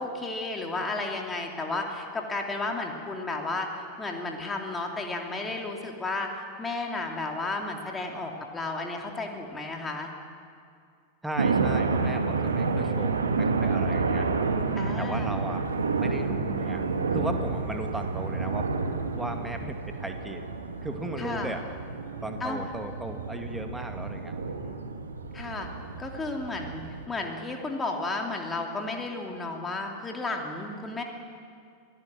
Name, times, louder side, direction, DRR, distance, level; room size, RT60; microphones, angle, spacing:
voice 1, 0.0-10.1 14.8-15.4 21.2-21.5 22.4-22.6 25.3-25.7 26.0-31.0, left 2 dB, 15° left, 1 dB, 2.8 m, -33 dB
voice 2, 11.2-15.7 16.0-16.8 17.1-18.7 19.1-20.5 20.8-21.6 22.2-24.8, right 1 dB, 5° right, 5 dB, 2.1 m, -36 dB
sound 1, 11.4-27.0, right 4 dB, 70° right, 1.6 m, -29 dB
26.5 x 17.5 x 7.7 m, 2.3 s
figure-of-eight pair, 90°, 0 cm